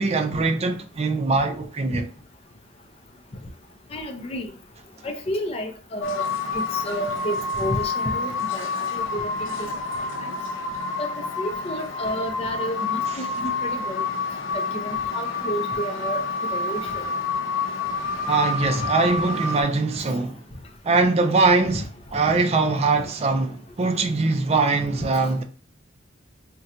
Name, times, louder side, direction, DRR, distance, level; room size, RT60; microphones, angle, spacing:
voice 1, 0.0-2.1 18.3-20.4 20.8-21.8 22.1-25.4, right 3 dB, 30° right, 0.4 m, -22 dB
voice 2, 3.9-4.5 5.0-6.3 6.5-9.7 10.2-10.3 11.0-11.1 11.4-14.0 14.5-16.2 16.5-17.0 25.0-25.1, equal, 30° left, 0.5 m, -31 dB
sound 1, 6.0-19.6, left 4 dB, 85° left, 0.6 m, -28 dB
2.8 x 2.2 x 3.7 m
head